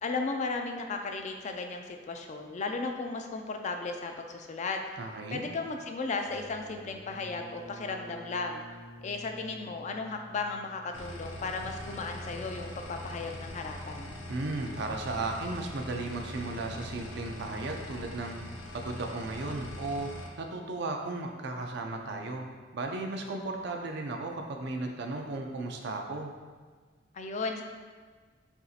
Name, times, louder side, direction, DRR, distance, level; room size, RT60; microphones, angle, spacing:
voice 1, 0.0-4.8 5.3-8.6 9.0-14.1 27.1-27.6, left 3 dB, 40° left, 4 dB, 0.4 m, -35 dB
voice 2, 5.0-5.4 14.3-20.1 20.4-22.5 22.7-26.3, right 2 dB, 65° right, 3 dB, 0.5 m, -35 dB
sound 1, 6.1-11.6, right 1 dB, 15° right, 0.7 m, -50 dB
sound 2, 10.9-20.3, left 1 dB, 85° left, 0.6 m, -42 dB
6.8 x 2.7 x 2.4 m, 1.5 s
head